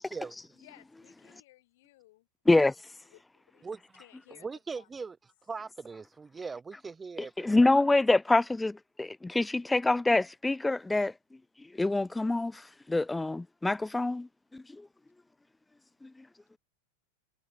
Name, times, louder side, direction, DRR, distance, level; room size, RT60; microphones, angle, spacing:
voice 1, 0.6-2.3 3.1-4.5 4.8-4.9, left 18 dB, 65° left, 7.1 m, -59 dB
voice 2, 4.4-5.2 5.5-7.7, right 4 dB, 15° right, 1.5 m, -40 dB
voice 3, 7.4-11.1 11.8-12.6 12.9-14.3 14.5-14.9 16.0-16.1, left 2 dB, 10° left, 1.1 m, -26 dB
hypercardioid pair, 105°, 0 cm